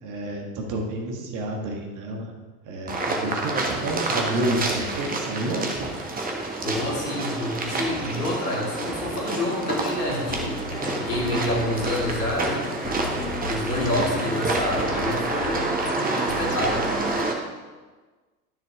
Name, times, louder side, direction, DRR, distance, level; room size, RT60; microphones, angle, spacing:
voice 1, 0.0-2.3 2.7-5.9, right 1 dB, 40° right, 1 dB, 1.8 m, -29 dB
sound 1, 2.9-17.3, right 2 dB, 20° right, 1.4 m, -28 dB
voice 2, 6.6-12.7 13.4-15.6 16.2-16.9, left 1 dB, 70° left, -3 dB, 2.8 m, -28 dB
sound 2, 10.3-17.1, left 3 dB, 30° left, 1.6 m, -36 dB
12.0 x 6.7 x 3.7 m, 1.3 s
figure-of-eight pair, 80°, 47 cm